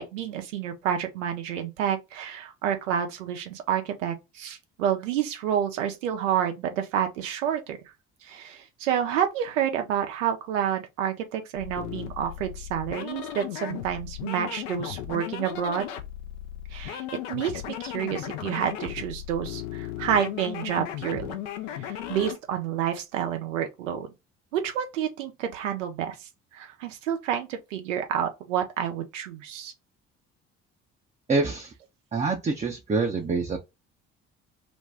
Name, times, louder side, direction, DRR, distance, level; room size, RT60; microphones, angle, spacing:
voice 1, 0.0-7.8 8.2-15.9 16.7-17.0 17.3-21.4 21.8-24.1 24.5-29.7, right 9 dB, 85° right, 0.6 m, -29 dB
sound 1, 11.5-22.4, left 11 dB, 75° left, 0.6 m, -36 dB
voice 2, 31.3-31.7 32.1-33.6, right 3 dB, 20° right, 0.6 m, -26 dB
2.6 x 2.2 x 3.2 m
hypercardioid pair, 50°, 36 cm